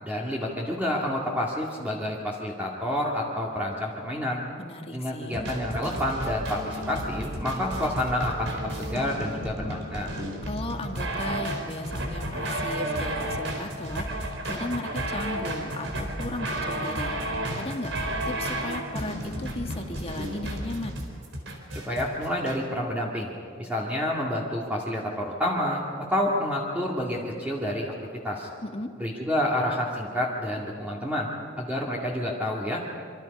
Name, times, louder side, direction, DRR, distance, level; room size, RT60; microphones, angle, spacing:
voice 1, 0.0-4.4 4.9-10.1 21.7-25.8 26.1-27.9 28.2-28.5 29.0-31.3 31.6-32.8, left 1 dB, 10° right, -4 dB, 2.3 m, -29 dB
voice 2, 4.6-5.5 10.4-17.1 17.5-21.0 28.6-28.9, left 2 dB, 30° left, 4 dB, 1.8 m, -36 dB
sound 1, 5.3-22.6, right 1 dB, 75° right, 4.2 m, -32 dB
26.5 x 25.0 x 5.5 m, 2.2 s
head